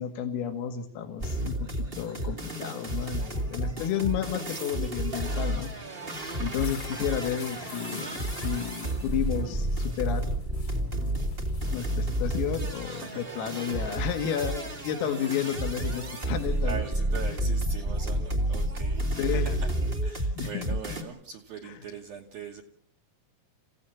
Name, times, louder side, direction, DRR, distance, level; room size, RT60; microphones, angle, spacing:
voice 1, 0.0-1.7 2.0-5.7 6.4-10.3 11.7-16.8 17.3-17.4 19.2-19.5 20.4-20.8, left 8 dB, 85° left, 7 dB, 4.7 m, -32 dB
sound 1, 1.2-21.0, right 1 dB, 45° right, 0.7 m, -31 dB
steps on the grass, 6.3-15.6, left 6 dB, 50° left, 1.7 m, -51 dB
voice 2, 12.8-13.4 16.6-19.7 20.0-22.6, right 6 dB, 70° right, 2 dB, 2.4 m, -41 dB
30.0 x 16.5 x 7.2 m, 0.65 s
omnidirectional pair, 5.9 m